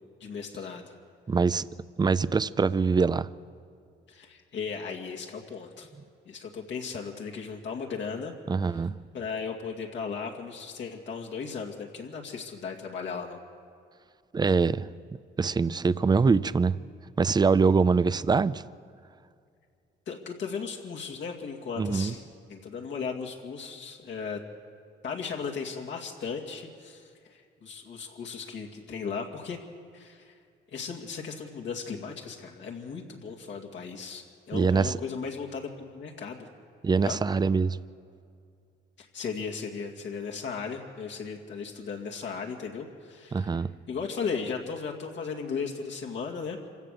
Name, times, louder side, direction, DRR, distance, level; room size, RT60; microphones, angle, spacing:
voice 1, 0.2-0.9 4.1-5.9 6.3-8.3 8.7-8.8 9.1-13.4 20.1-22.2 22.5-24.4 25.0-29.6 29.9-30.3 30.7-36.5 37.0-37.2 39.0-46.6, left 5 dB, 70° left, 2.3 m, -36 dB
voice 2, 1.3-1.7 2.0-3.3 8.5-9.0 14.3-14.9 15.4-16.8 17.2-18.6 21.8-22.1 34.5-35.0 36.8-37.8 43.3-43.7, right 4 dB, 20° right, 0.5 m, -24 dB
26.0 x 16.5 x 6.6 m
cardioid pair, 90°, 20 cm